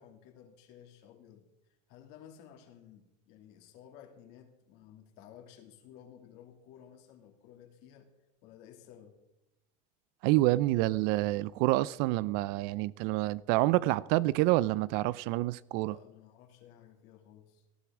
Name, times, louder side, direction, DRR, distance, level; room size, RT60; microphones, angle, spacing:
voice 1, 0.0-8.1 8.4-9.2 15.9-17.6, left 9 dB, 65° left, 2.5 m, -55 dB
voice 2, 10.2-16.0, right 18 dB, 60° right, 0.4 m, -28 dB
18.0 x 11.5 x 3.6 m
supercardioid pair, 135°, 19 cm